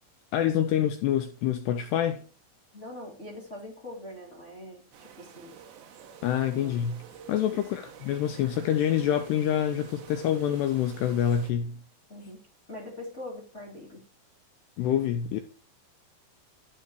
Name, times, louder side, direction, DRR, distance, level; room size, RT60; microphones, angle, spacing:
voice 1, 0.3-2.2 6.2-7.0 7.3-11.8 14.8-15.4, left 10 dB, 85° left, 2.5 m, -26 dB
voice 2, 2.7-5.5 6.5-6.7 7.5-7.7 12.1-12.4 12.7-14.0, left 1 dB, 30° left, 1.3 m, -42 dB
sound 1, 4.9-11.5, right 8 dB, 70° right, 3.2 m, -49 dB
12.0 x 4.1 x 6.2 m
omnidirectional pair, 5.5 m